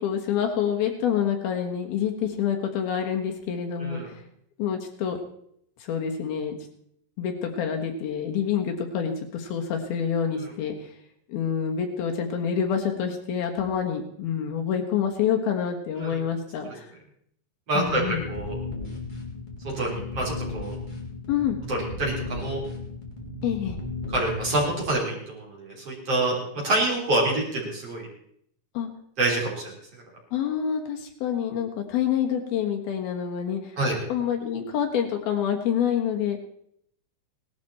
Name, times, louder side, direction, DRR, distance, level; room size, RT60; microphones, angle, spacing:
voice 1, 0.0-4.2 4.6-5.2 5.8-6.6 7.2-10.9 11.3-16.9 17.7-18.3 21.3-21.6 23.4-23.8 28.7-28.9 30.3-33.8 34.1-36.4, left 8 dB, 70° left, 3 dB, 3.2 m, -27 dB
voice 2, 3.8-4.1 16.0-16.2 17.7-18.0 18.3-18.5 19.6-20.8 21.7-22.6 24.1-26.3 26.6-28.1 29.2-29.7 33.8-34.0, right 2 dB, 35° right, -3 dB, 5.1 m, -26 dB
sound 1, 17.8-24.9, left 3 dB, 15° left, 2.7 m, -35 dB
18.5 x 12.5 x 4.4 m, 0.69 s
omnidirectional pair, 4.6 m